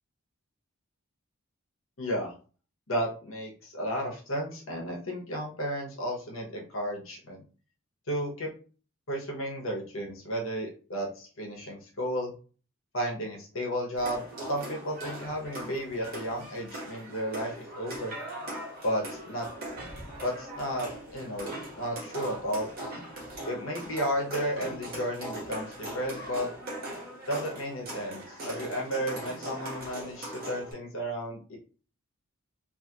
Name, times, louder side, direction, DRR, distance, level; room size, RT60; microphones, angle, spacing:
voice 1, 2.0-2.3 2.9-7.4 8.1-8.5 9.1-12.3 12.9-18.2 18.8-19.5 20.2-22.7 23.5-26.5 27.3-31.6, equal, 65° left, -1 dB, 1.1 m, -33 dB
sound 1, 14.0-30.7, right 1 dB, 45° right, 1.3 m, -40 dB
2.8 x 2.5 x 2.9 m, 0.37 s
head